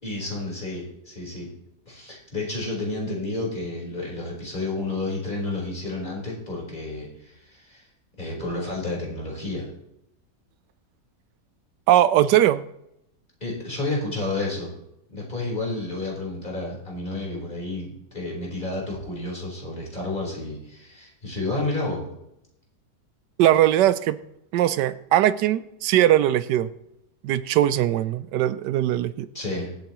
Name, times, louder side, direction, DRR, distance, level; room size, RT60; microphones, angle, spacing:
voice 1, 0.0-1.5 1.9-7.9 8.2-9.7 13.4-14.7 15.1-22.0 29.3-29.8, left 2 dB, 25° left, -3 dB, 4.4 m, -31 dB
voice 2, 11.9-12.6 23.4-24.2 24.5-26.7 27.2-29.3, right 12 dB, 85° right, 14 dB, 1.2 m, -20 dB
23.5 x 8.3 x 3.0 m, 0.83 s
omnidirectional pair, 1.8 m